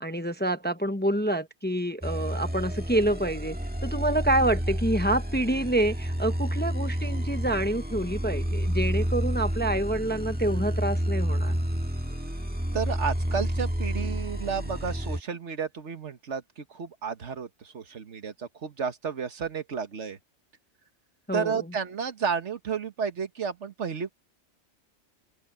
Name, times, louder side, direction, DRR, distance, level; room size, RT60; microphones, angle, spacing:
voice 1, 0.0-3.6 3.8-11.5 21.3-21.6, right 1 dB, 10° left, 0.9 m, -27 dB
sound 1, 2.0-15.2, equal, 10° right, 1.8 m, -30 dB
voice 2, 12.7-20.2 21.3-24.1, right 6 dB, 70° right, 1.6 m, -32 dB
open air
omnidirectional pair, 1.2 m